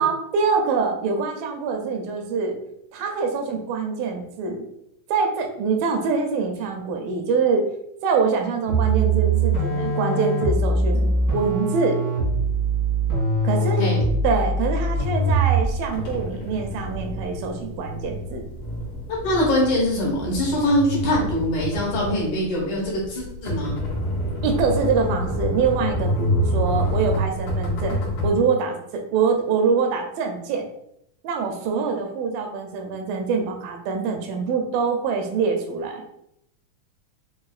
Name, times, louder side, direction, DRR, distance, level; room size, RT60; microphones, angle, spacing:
voice 1, 0.0-2.5 2.9-4.6 5.1-7.6 8.0-12.0 13.4-13.9 14.2-18.4 24.4-28.8 29.1-30.7 31.2-36.0, right 5 dB, 80° right, 3 dB, 2.3 m, -24 dB
sound 1, 8.7-15.8, right 2 dB, 55° right, 1.0 m, -22 dB
sound 2, 15.9-28.3, equal, 90° left, 1.2 m, -27 dB
voice 2, 19.2-23.8, left 1 dB, 65° left, -4 dB, 2.2 m, -23 dB
5.6 x 2.5 x 2.4 m, 0.75 s
omnidirectional pair, 4.1 m